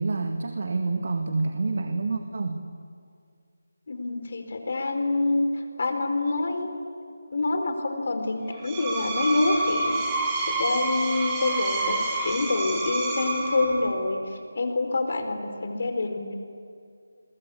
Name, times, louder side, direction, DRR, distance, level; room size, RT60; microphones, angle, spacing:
voice 1, 0.0-2.6, right 3 dB, 55° right, 5 dB, 2.0 m, -28 dB
voice 2, 3.9-6.7 7.3-10.0 10.5-16.3, left 2 dB, 50° left, 6 dB, 4.3 m, -27 dB
Screech, 8.5-14.0, right 2 dB, 15° right, 3.7 m, -28 dB
29.5 x 22.5 x 8.5 m, 2.3 s
figure-of-eight pair, 170°, 0 cm